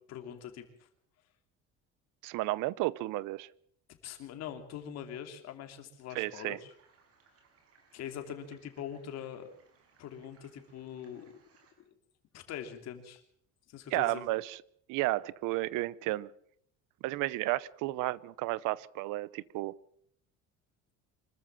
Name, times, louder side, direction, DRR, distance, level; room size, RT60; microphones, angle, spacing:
voice 1, 0.1-0.7 4.0-6.7 7.9-9.5 10.0-11.3 12.3-13.2 13.7-14.2, left 9 dB, 55° left, 6 dB, 3.0 m, -43 dB
voice 2, 2.2-3.5 6.1-6.6 13.9-14.6 14.9-16.3 17.0-19.8, right 18 dB, 85° right, 22 dB, 0.8 m, -32 dB
sound 1, 6.1-11.7, right 5 dB, 50° right, 5.6 m, -66 dB
25.5 x 14.0 x 7.4 m, 0.67 s
cardioid pair, 170°, 31 cm